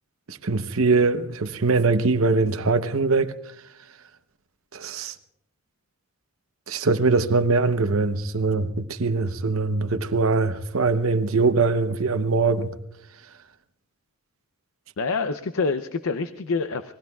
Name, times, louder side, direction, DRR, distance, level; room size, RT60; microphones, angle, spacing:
voice 1, 0.3-3.3 4.7-5.1 6.7-12.7, right 3 dB, 75° right, 0.8 m, -22 dB
voice 2, 15.0-16.9, left 4 dB, 80° left, 0.6 m, -26 dB
29.0 x 20.5 x 2.3 m
head